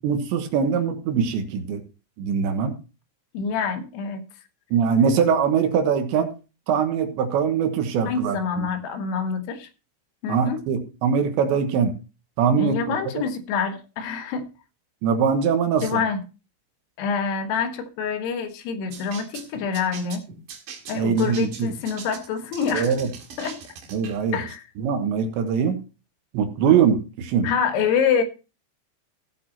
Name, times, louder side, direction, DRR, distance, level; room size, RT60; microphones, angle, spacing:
voice 1, 0.0-1.8 2.2-2.7 4.7-6.3 6.7-8.7 10.3-12.0 12.4-13.0 15.0-16.0 20.9-21.7 22.7-23.1 23.9-24.4 24.8-25.8 26.3-27.5, right 6 dB, 75° right, 3.3 m, -22 dB
voice 2, 3.3-4.2 8.1-9.7 10.2-10.6 12.6-14.5 15.8-16.2 17.0-20.2 20.9-22.9 23.4-23.6 24.3-24.6 27.4-28.2, left 6 dB, 65° left, 3.1 m, -26 dB
sound 1, 18.9-24.2, right 6 dB, 55° right, 2.8 m, -41 dB
17.0 x 8.4 x 2.9 m
omnidirectional pair, 5.7 m